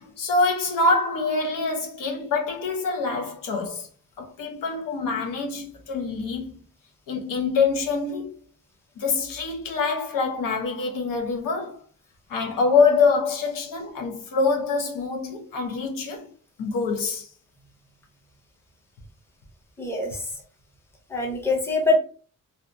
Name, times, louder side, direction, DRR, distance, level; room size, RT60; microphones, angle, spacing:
voice 1, 0.0-3.9 4.2-6.5 7.1-8.3 9.0-11.8 12.3-16.3 16.6-17.3, left 4 dB, 85° left, 0.8 m, -25 dB
voice 2, 19.8-20.4 21.1-22.0, left 2 dB, 10° left, 0.5 m, -24 dB
2.7 x 2.3 x 2.5 m
wide cardioid pair, 165°, 32 cm